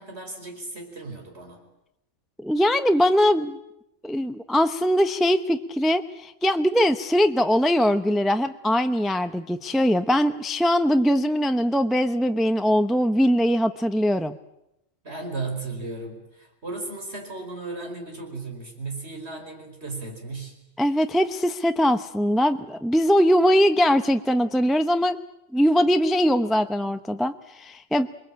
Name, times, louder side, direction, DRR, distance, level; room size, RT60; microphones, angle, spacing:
voice 1, 0.0-1.6 15.0-20.5, right 3 dB, 55° right, 4 dB, 5.2 m, -35 dB
voice 2, 2.4-3.6 4.0-14.4 20.8-25.2 25.5-28.1, equal, ahead, 8 dB, 0.6 m, -21 dB
28.0 x 21.5 x 8.7 m, 0.87 s
omnidirectional pair, 1.3 m